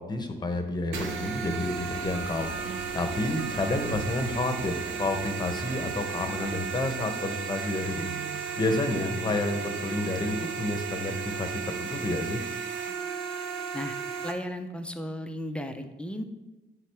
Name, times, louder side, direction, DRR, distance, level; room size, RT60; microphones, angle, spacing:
voice 1, 0.0-2.5 2.9-8.0 8.6-12.4, left 2 dB, 20° left, 6 dB, 0.9 m, -30 dB
sound 1, 0.9-14.3, right 6 dB, 80° right, 0.8 m, -35 dB
sound 2, 1.0-6.7, right 1 dB, 40° right, 2.0 m, -42 dB
sound 3, 7.9-14.1, right 11 dB, 20° right, 2.0 m, -52 dB
voice 2, 14.2-16.2, left 1 dB, 5° left, 7 dB, 0.5 m, -35 dB
9.4 x 3.7 x 3.4 m, 1.1 s
cardioid pair, 90°, 20 cm